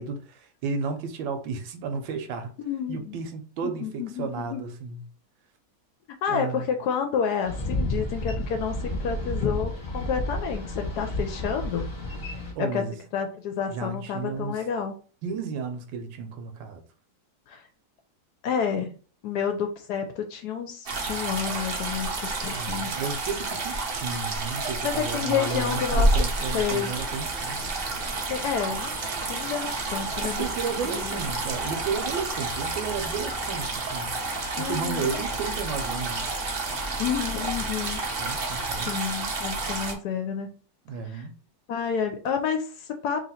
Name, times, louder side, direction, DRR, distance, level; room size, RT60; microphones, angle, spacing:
voice 1, 0.0-2.5 2.9-5.0 6.3-6.7 12.6-12.9 13.7-14.6 15.2-16.8 22.5-27.7 30.2-34.1 34.6-36.2 38.2-39.0 40.9-41.4, right 5 dB, 85° right, 1.4 m, -33 dB
voice 2, 2.6-3.2 3.6-4.6 6.2-11.9 12.6-12.8 13.1-15.0 17.5-17.6 18.4-18.9 19.2-22.9 24.8-26.1 26.5-26.9 28.3-28.9 29.3-30.4 30.9-31.2 34.6-35.2 37.0-38.5 38.8-40.6 41.1-41.2 41.7-43.2, left 7 dB, 70° left, 1.0 m, -30 dB
Boat Water vehicle, 7.5-12.5, left 2 dB, 30° left, 0.9 m, -31 dB
sound 1, 20.9-39.9, right 2 dB, 60° right, 0.6 m, -30 dB
sound 2, 26.4-39.0, left 1 dB, 5° right, 0.4 m, -44 dB
3.0 x 2.8 x 4.1 m
omnidirectional pair, 2.0 m